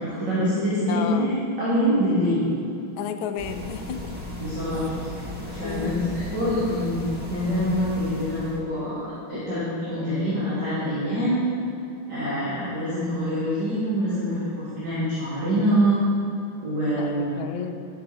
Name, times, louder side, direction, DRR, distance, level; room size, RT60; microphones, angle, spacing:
voice 1, 0.0-2.5 4.4-4.9 5.4-7.0 7.3-11.4 12.1-15.9 16.6-17.3, equal, 55° right, -12 dB, 3.1 m, -25 dB
voice 2, 0.9-1.4 3.0-4.0 5.6-6.1 16.9-17.7, left 8 dB, 75° left, 8 dB, 1.3 m, -32 dB
sound 1, 3.4-8.6, left 1 dB, 5° right, 1.2 m, -35 dB
13.0 x 6.8 x 4.1 m, 2.8 s
omnidirectional pair, 2.3 m